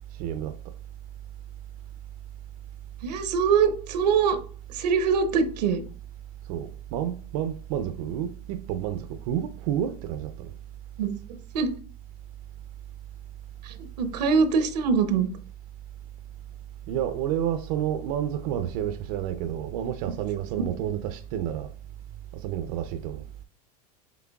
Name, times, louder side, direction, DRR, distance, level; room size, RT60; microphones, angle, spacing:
voice 1, 0.2-0.5 6.5-10.5 16.9-21.7 22.4-23.2, right 10 dB, 60° right, 0.5 m, -30 dB
voice 2, 3.0-4.4 4.7-5.8 11.0-11.1 11.5-11.7 13.6-15.3 20.1-20.2, right 6 dB, 85° right, 0.8 m, -23 dB
6.0 x 3.3 x 2.3 m
supercardioid pair, 115°, 20 cm